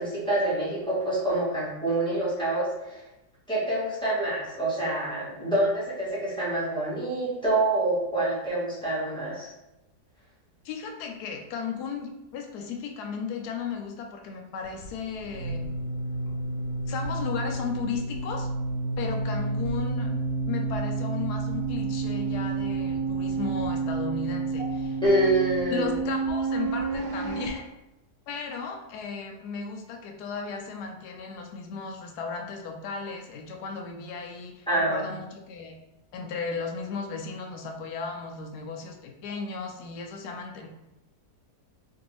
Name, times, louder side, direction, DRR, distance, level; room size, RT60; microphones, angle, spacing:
voice 1, 0.0-3.0 3.5-9.5 25.0-25.9 34.7-35.1, right 1 dB, 5° left, -9 dB, 1.0 m, -26 dB
voice 2, 10.6-15.7 16.3-16.4 16.9-18.5 19.0-20.1 20.5-25.0 25.7-27.7 28.3-35.8 36.1-40.7, left 5 dB, 80° left, 3 dB, 1.1 m, -35 dB
sound 1, 14.6-27.5, right 3 dB, 90° right, 1.2 m, -30 dB
2.8 x 2.6 x 3.0 m, 0.94 s
omnidirectional pair, 1.7 m